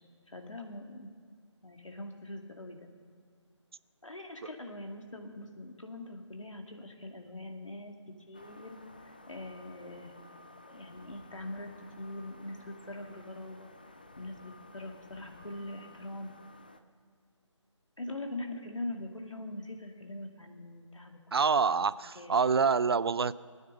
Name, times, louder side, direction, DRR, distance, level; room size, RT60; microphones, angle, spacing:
voice 1, 0.3-1.1 1.6-2.9 4.0-7.9 8.3-8.8 9.3-10.1 10.7-11.7 12.0-13.7 14.2-16.3 18.0-21.9 22.1-22.6, left 1 dB, 85° left, 3 dB, 2.2 m, -42 dB
sound 1, 8.3-16.8, left 2 dB, 20° left, 0.3 m, -54 dB
voice 2, 21.3-23.3, right 5 dB, 55° right, 18 dB, 0.4 m, -26 dB
20.0 x 9.5 x 6.6 m, 2.1 s
figure-of-eight pair, 165°, 16 cm